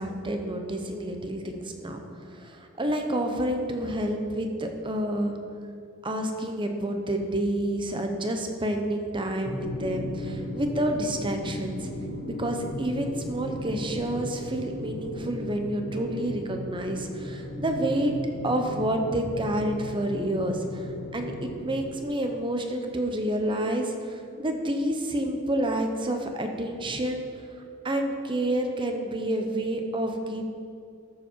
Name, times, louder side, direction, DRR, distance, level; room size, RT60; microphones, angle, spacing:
voice 1, 0.0-2.0 2.3-5.3 6.0-11.9 12.2-18.1 18.4-27.2 27.8-30.4, right 1 dB, 25° right, 4 dB, 1.0 m, -29 dB
sound 1, 9.4-21.8, left 1 dB, 70° left, 1.3 m, -36 dB
13.0 x 7.4 x 4.6 m, 2.4 s
head